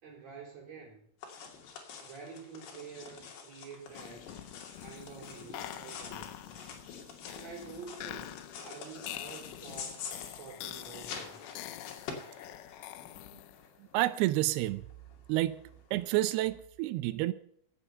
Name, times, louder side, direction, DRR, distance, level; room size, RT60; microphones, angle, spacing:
voice 1, 0.0-1.0 2.0-4.3 4.8-6.6 7.3-10.1 10.4-11.5, right 5 dB, 35° right, -4 dB, 4.9 m, -48 dB
sound 1, 1.2-16.6, left 6 dB, 65° left, 4.5 m, -47 dB
sound 2, 3.9-13.8, left 13 dB, 90° left, 3.3 m, -46 dB
voice 2, 13.9-14.8 15.3-15.6 15.9-17.3, right 16 dB, 90° right, 15 dB, 2.3 m, -29 dB
17.5 x 8.4 x 5.7 m, 0.67 s
omnidirectional pair, 5.3 m